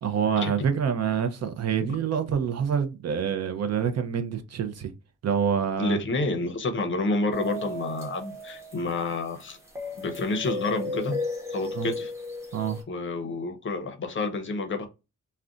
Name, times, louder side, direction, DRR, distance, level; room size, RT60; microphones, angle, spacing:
voice 1, 0.0-4.9 5.2-6.0 11.7-11.9 12.5-12.8, right 7 dB, 55° right, 0.5 m, -26 dB
voice 2, 5.8-9.6 10.0-11.2 11.5-12.1 12.9-14.9, left 2 dB, 40° left, 0.6 m, -29 dB
sound 1, 7.3-12.8, left 2 dB, 10° right, 0.7 m, -35 dB
2.4 x 2.1 x 3.7 m
wide cardioid pair, 170°, 31 cm